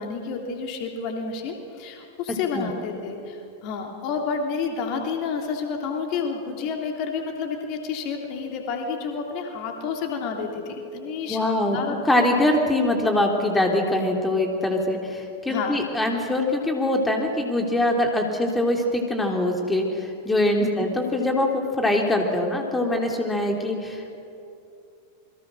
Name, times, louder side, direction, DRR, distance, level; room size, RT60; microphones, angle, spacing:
voice 1, 0.0-12.0 15.5-15.8 20.6-20.9, left 5 dB, 40° left, 2 dB, 3.2 m, -30 dB
voice 2, 11.3-11.8 12.0-24.2, left 1 dB, 10° left, 2 dB, 3.2 m, -23 dB
28.0 x 23.0 x 6.4 m, 2.6 s
figure-of-eight pair, 90°, 0 cm